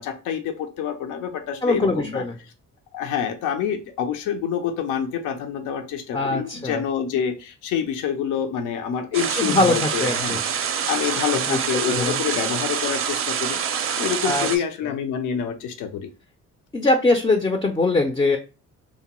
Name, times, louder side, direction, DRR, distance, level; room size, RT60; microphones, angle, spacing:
voice 1, 0.0-2.2 2.9-10.4 10.9-13.6 14.0-16.1, left 8 dB, 85° left, 7 dB, 0.5 m, -27 dB
voice 2, 1.6-2.4 6.1-6.8 9.1-10.4 11.5-11.6 11.9-12.2 14.2-14.5 16.7-18.4, left 2 dB, 15° left, 5 dB, 0.3 m, -22 dB
sound 1, 9.1-14.6, right 8 dB, 50° right, 0.4 m, -26 dB
2.8 x 2.1 x 2.9 m, 0.33 s
cardioid pair, 90°, 30 cm